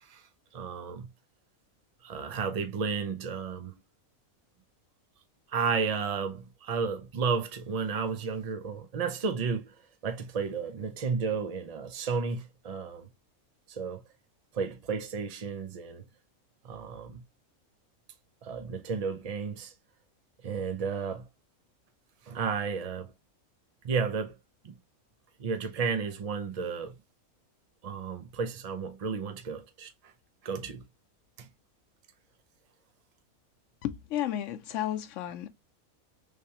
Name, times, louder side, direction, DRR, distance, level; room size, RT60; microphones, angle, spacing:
voice 1, 0.5-1.1 2.0-3.7 5.5-9.8 10.0-13.1 13.7-14.0 14.5-16.0 16.6-17.2 18.4-19.7 20.4-21.3 22.3-23.1 23.8-24.4 24.6-24.7 25.4-27.0 27.8-29.9 30.4-30.8 31.4-31.5, right 5 dB, 85° right, 0.3 m, -32 dB
voice 2, 33.8-35.5, left 11 dB, 65° left, 0.9 m, -32 dB
3.4 x 3.3 x 2.8 m
omnidirectional pair, 1.5 m